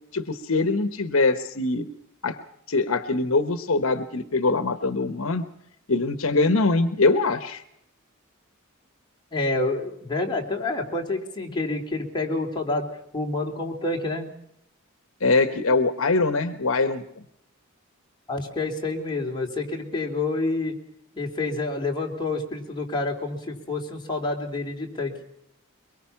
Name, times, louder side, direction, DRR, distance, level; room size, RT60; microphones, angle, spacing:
voice 1, 0.1-1.9 2.2-2.4 2.7-5.4 5.9-7.6 15.2-17.0, left 3 dB, 70° left, 10 dB, 1.2 m, -23 dB
voice 2, 9.3-12.9 13.1-14.3 18.3-20.7 21.2-25.1, left 2 dB, 20° left, 0 dB, 3.6 m, -28 dB
23.0 x 22.5 x 5.9 m, 0.75 s
head